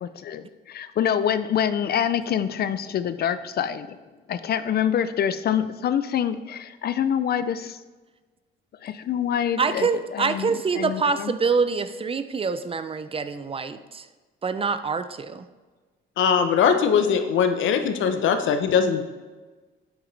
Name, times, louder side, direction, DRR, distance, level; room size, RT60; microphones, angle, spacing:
voice 1, 0.0-4.0 4.3-7.8 8.8-11.3, left 9 dB, 55° left, 13 dB, 0.4 m, -26 dB
voice 2, 9.6-14.0 14.4-15.5, right 5 dB, 30° right, 11 dB, 0.4 m, -25 dB
voice 3, 16.2-19.0, left 7 dB, 75° left, 8 dB, 0.8 m, -21 dB
7.9 x 5.9 x 3.3 m, 1.3 s
cardioid pair, 90°, 20 cm